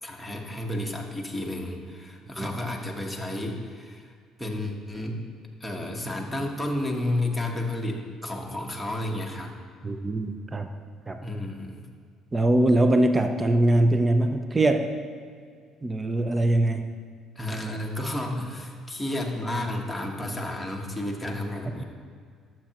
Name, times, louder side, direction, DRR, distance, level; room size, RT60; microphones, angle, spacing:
voice 1, 0.0-4.1 4.4-5.2 5.6-9.5 11.2-11.8 17.3-21.8, left 1 dB, ahead, -1 dB, 1.2 m, -31 dB
voice 2, 9.8-10.7 11.1-11.2 12.3-14.9 15.8-16.8, right 1 dB, 20° right, 7 dB, 0.6 m, -22 dB
11.5 x 7.4 x 3.0 m, 2.1 s
cardioid pair, 100°, 0 cm